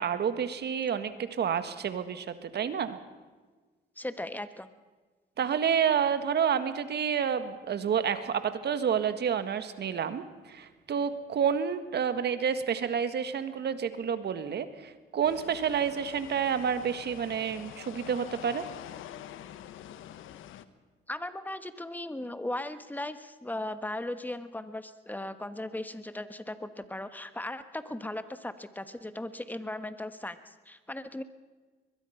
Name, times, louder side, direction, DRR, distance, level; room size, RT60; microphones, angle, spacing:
voice 1, 0.0-3.0 5.4-18.7, right 7 dB, 60° right, 11 dB, 1.7 m, -29 dB
voice 2, 4.0-4.7 21.1-31.2, left 1 dB, 10° left, 11 dB, 1.3 m, -37 dB
sound 1, 15.2-20.6, left 11 dB, 85° left, 1.1 m, -46 dB
22.5 x 21.5 x 5.8 m, 1.3 s
cardioid pair, 90°, 20 cm